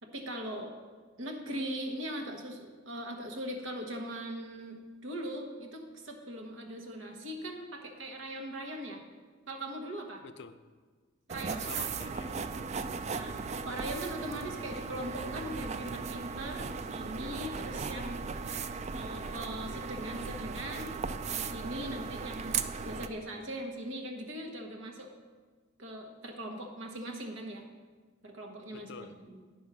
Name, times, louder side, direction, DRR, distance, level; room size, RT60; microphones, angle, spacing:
voice 1, 0.0-0.7 1.2-9.0 9.5-10.2 11.3-11.7 13.1-20.9 21.3-25.1 25.8-27.7 28.2-29.4, right 1 dB, 70° right, 2 dB, 1.2 m, -40 dB
voice 2, 10.2-10.6 11.6-12.9 28.7-29.2, left 5 dB, 65° left, 10 dB, 0.5 m, -47 dB
sound 1, 11.3-23.1, right 5 dB, 35° right, 0.3 m, -37 dB
9.5 x 5.5 x 6.0 m, 1.5 s
head